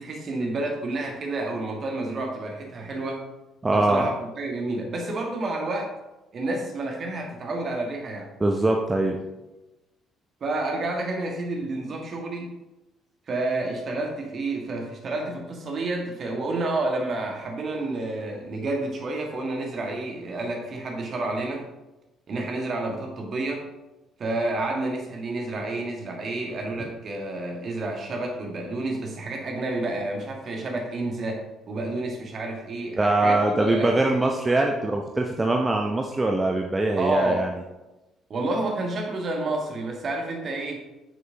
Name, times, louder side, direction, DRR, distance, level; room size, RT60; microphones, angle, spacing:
voice 1, 0.0-3.3 3.7-5.9 6.3-8.3 10.4-12.5 13.3-21.7 22.3-23.7 24.2-33.9 37.0-37.5 38.3-40.9, right 2 dB, 45° right, 1 dB, 1.6 m, -29 dB
voice 2, 3.6-4.1 8.4-9.2 33.0-37.5, right 2 dB, 20° right, 2 dB, 0.7 m, -22 dB
8.9 x 6.5 x 2.8 m, 1.0 s
figure-of-eight pair, 45°, 0 cm